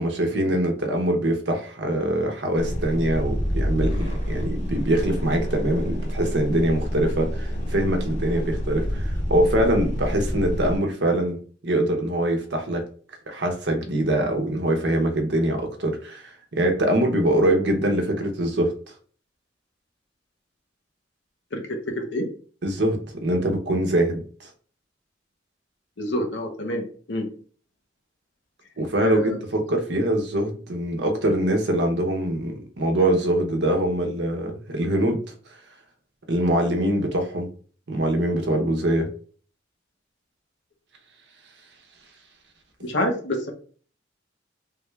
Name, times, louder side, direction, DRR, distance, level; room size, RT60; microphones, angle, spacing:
voice 1, 0.0-12.9 13.3-18.7 22.6-24.5 28.8-35.2 36.3-37.5 37.9-39.1, right 1 dB, 65° right, 3 dB, 0.8 m, -23 dB
sound 1, 2.5-10.8, equal, 40° left, 0.8 m, -28 dB
voice 2, 21.5-22.3 26.0-27.3 29.0-29.4 42.8-43.5, left 1 dB, 75° left, 3 dB, 0.8 m, -28 dB
3.5 x 2.3 x 3.2 m, 0.43 s
head